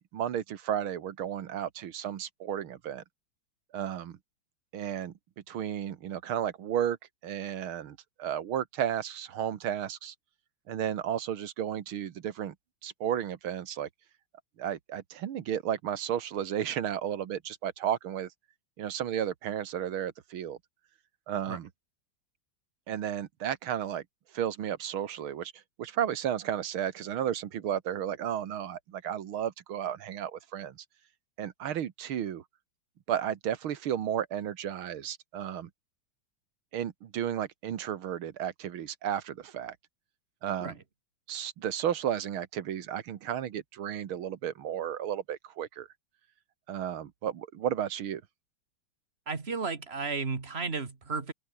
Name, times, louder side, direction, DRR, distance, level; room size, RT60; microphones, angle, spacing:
voice 1, 0.1-3.0 3.7-4.2 4.7-5.1 5.5-7.0 7.2-10.1 10.7-12.6 12.8-13.9 14.6-18.3 18.8-20.6 21.3-21.7 22.9-24.0 24.3-30.8 31.4-32.4 33.1-35.7 36.7-39.8 40.4-40.8 41.3-45.9 46.7-48.2, right 10 dB, 75° right, 2.1 m, -33 dB
voice 2, 49.3-51.3, right 4 dB, 30° right, 2.1 m, -33 dB
open air
omnidirectional pair, 2.4 m